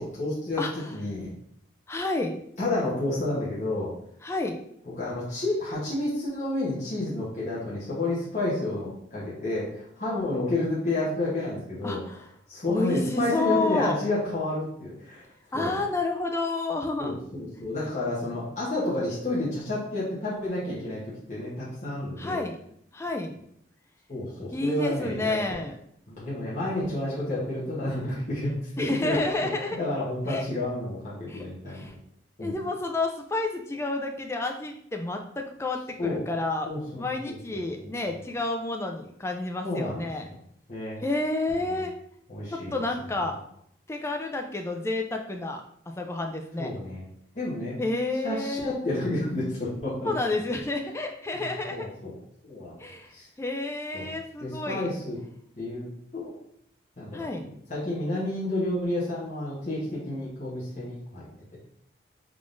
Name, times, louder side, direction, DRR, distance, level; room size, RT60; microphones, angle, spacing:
voice 1, 0.0-1.3 2.6-3.9 5.0-12.0 12.5-15.2 15.5-15.7 17.0-21.0 21.3-22.4 24.1-25.6 26.1-29.2 29.8-31.9 32.4-32.5 36.0-36.2 36.6-37.9 39.6-40.1 40.7-41.0 41.6-41.8 42.3-42.7 46.6-47.1 47.3-47.8 48.2-50.1 51.3-52.1 52.5-52.8 53.1-53.3 53.9-54.1 54.4-55.2 55.6-55.9 56.1-56.3 57.0-57.3 57.7-61.2, left 2 dB, 40° left, -8 dB, 1.0 m, -30 dB
voice 2, 0.6-0.9 1.9-2.4 4.2-4.6 11.8-12.2 12.7-14.0 15.5-17.2 22.2-22.6 22.9-23.3 24.5-25.7 28.8-29.8 30.3-30.4 31.3-31.9 32.4-36.7 36.9-40.3 41.0-41.9 42.5-43.4 43.9-45.6 46.0-46.7 47.8-48.7 50.0-51.9 52.8-53.1 53.4-54.9 57.1-57.5, left 2 dB, 15° left, 3 dB, 0.3 m, -30 dB
3.6 x 3.5 x 2.5 m, 0.70 s
head